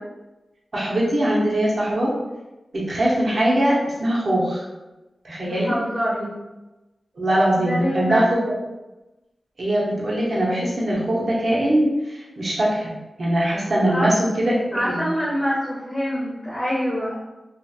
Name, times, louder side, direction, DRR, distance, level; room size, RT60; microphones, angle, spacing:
voice 1, 0.7-2.1 2.7-4.6 5.2-5.7 7.1-8.5 9.6-12.9 13.2-15.1, right 1 dB, 60° right, -5 dB, 0.9 m, -21 dB
voice 2, 5.4-6.3 7.6-8.2 13.9-14.4 14.7-17.2, equal, 20° left, -8 dB, 1.0 m, -25 dB
2.8 x 2.5 x 2.3 m, 1.0 s
cardioid pair, 45°, 0 cm